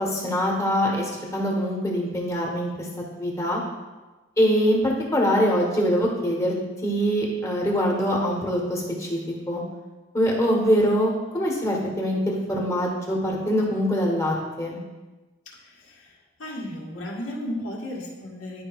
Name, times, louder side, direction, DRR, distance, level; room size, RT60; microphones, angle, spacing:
voice 1, 0.0-2.9 3.2-3.6 4.4-6.5 6.8-9.2 9.5-9.6 10.1-14.8, equal, 15° left, -2 dB, 1.3 m, -23 dB
voice 2, 15.5-16.1 16.4-18.6, left 1 dB, 75° left, -4 dB, 1.8 m, -34 dB
11.0 x 5.1 x 2.4 m, 1.2 s
head